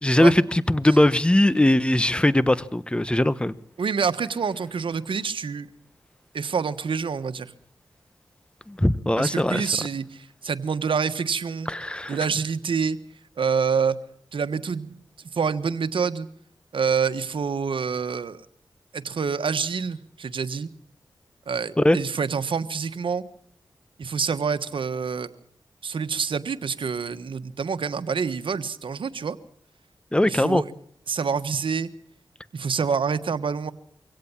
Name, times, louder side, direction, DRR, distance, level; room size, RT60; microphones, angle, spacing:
voice 1, 0.0-3.5 8.7-9.7 11.7-12.2 21.8-22.0 30.1-30.6, left 1 dB, 10° left, 1.1 m, -20 dB
voice 2, 3.8-5.7 6.3-7.5 9.2-11.7 12.1-13.0 13.4-14.0 14.3-15.0 15.3-16.3 16.7-18.4 18.9-20.7 21.5-23.2 24.0-25.3 25.8-29.3 30.3-30.7 31.1-31.9 32.5-33.7, right 6 dB, 80° right, 1.4 m, -27 dB
24.5 x 17.0 x 7.2 m
cardioid pair, 55°, 9 cm